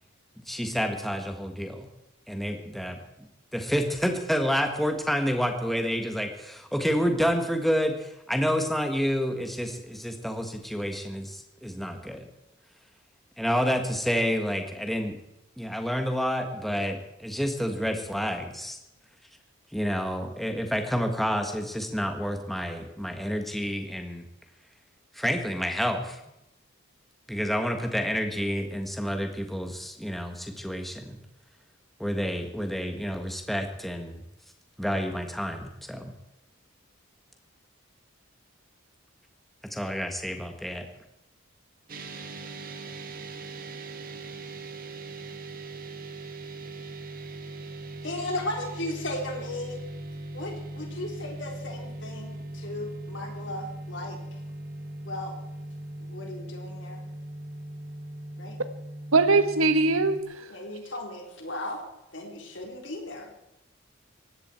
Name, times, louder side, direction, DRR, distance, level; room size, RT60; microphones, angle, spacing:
voice 1, 0.5-1.9 2.3-12.3 13.4-15.2 15.6-18.8 19.7-24.2 25.1-26.2 27.3-31.2 32.0-34.2 34.8-36.1 39.7-40.9, equal, ahead, 4 dB, 1.6 m, -29 dB
sound 1, 41.9-60.2, right 2 dB, 45° right, 1.7 m, -40 dB
voice 2, 48.0-49.8 50.3-54.2 55.1-55.3 56.0-57.0 58.4-58.6 60.5-61.8 62.1-63.3, left 1 dB, 60° left, 1 dB, 4.0 m, -36 dB
voice 3, 59.1-60.5, right 3 dB, 85° right, 10 dB, 1.4 m, -21 dB
19.0 x 16.0 x 4.5 m, 0.87 s
head